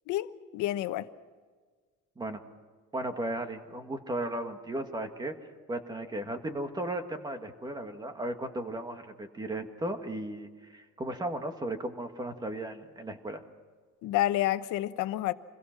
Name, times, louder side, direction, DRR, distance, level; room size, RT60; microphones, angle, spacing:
voice 1, 0.1-1.1 14.0-15.3, left 14 dB, 75° left, 1.1 m, -29 dB
voice 2, 2.9-5.3 5.7-13.4, right 1 dB, 15° right, 1.7 m, -35 dB
27.5 x 21.5 x 6.1 m
cardioid pair, 170°, 31 cm